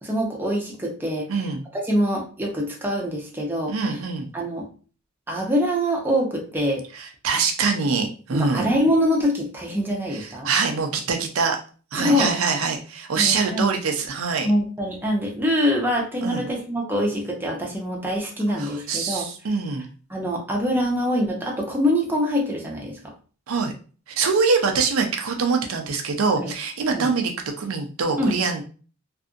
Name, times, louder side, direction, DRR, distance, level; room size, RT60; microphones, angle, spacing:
voice 1, 0.0-1.4 1.7-3.7 4.3-4.6 5.3-6.8 8.3-10.5 11.9-12.3 13.2-13.7 14.4-19.3 20.1-23.0 26.4-26.5 26.9-27.1 28.2-28.3, equal, 10° right, -1 dB, 0.6 m, -24 dB
voice 2, 1.3-1.6 3.7-4.3 6.9-8.7 10.1-11.6 11.9-14.5 16.2-16.4 18.6-19.9 23.5-23.7 24.1-27.3 27.6-28.6, right 4 dB, 75° right, 4 dB, 0.5 m, -24 dB
2.6 x 2.5 x 2.4 m, 0.38 s
head